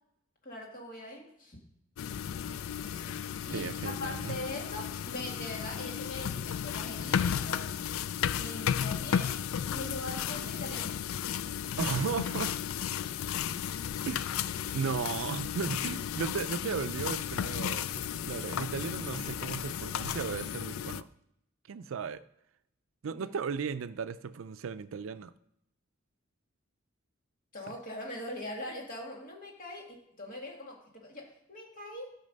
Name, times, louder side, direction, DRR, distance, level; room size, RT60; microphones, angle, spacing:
voice 1, 0.4-1.6 2.8-3.2 3.5-7.9 8.3-9.4 9.7-11.0 23.1-23.3 27.5-32.1, left 1 dB, 40° left, 2.2 m, -42 dB
sound 1, 2.0-21.0, left 9 dB, 90° left, 0.4 m, -34 dB
voice 2, 3.5-4.4 11.8-12.6 14.1-14.3 14.7-21.1 21.7-22.2 23.0-25.3, right 6 dB, 80° right, 0.4 m, -35 dB
14.0 x 5.8 x 5.3 m
head